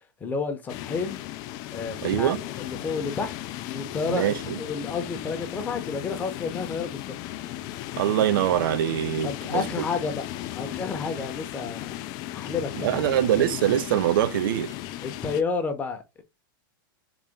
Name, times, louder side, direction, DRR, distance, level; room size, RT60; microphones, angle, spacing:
voice 1, 0.2-1.2 1.7-3.3 3.7-7.0 9.2-10.3 10.5-11.9 12.3-13.2 15.0-16.2, left 4 dB, 15° left, 0.7 m, -31 dB
sound 1, 0.7-15.4, left 14 dB, 35° left, 0.3 m, -36 dB
voice 2, 2.0-2.4 4.1-4.6 8.0-9.9 12.8-14.7, right 12 dB, 75° right, 0.4 m, -24 dB
3.9 x 2.2 x 3.5 m
supercardioid pair, 150°, 12 cm